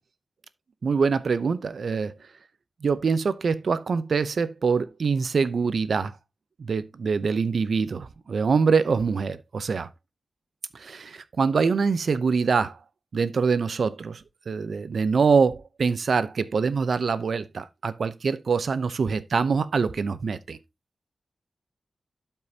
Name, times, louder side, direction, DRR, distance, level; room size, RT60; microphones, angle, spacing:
voice 1, 0.8-2.1 2.8-6.1 6.6-9.9 10.7-12.8 13.1-20.6, right 5 dB, 60° right, 0.6 m, -24 dB
12.0 x 5.4 x 2.8 m
wide cardioid pair, 175°, 0 cm